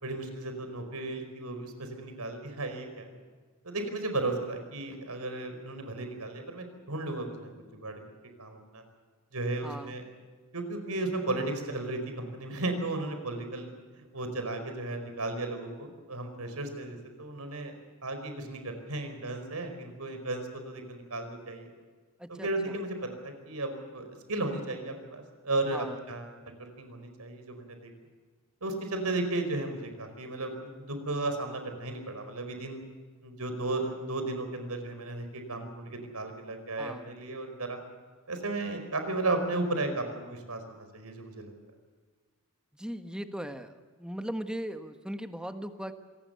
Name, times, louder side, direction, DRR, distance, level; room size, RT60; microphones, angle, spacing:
voice 1, 0.0-3.1 3.6-7.5 7.8-7.9 8.4-8.8 9.3-10.0 10.5-13.7 14.0-17.7 18.0-21.7 22.3-26.3 26.6-27.9 28.6-32.8 33.2-37.8 38.3-41.5, right 2 dB, 85° right, 7 dB, 5.0 m, -34 dB
voice 2, 9.6-9.9 22.2-22.7 25.7-26.0 36.8-37.1 42.7-43.7 44.0-45.9, equal, 5° right, 8 dB, 1.3 m, -38 dB
26.0 x 19.0 x 6.9 m, 1.5 s
head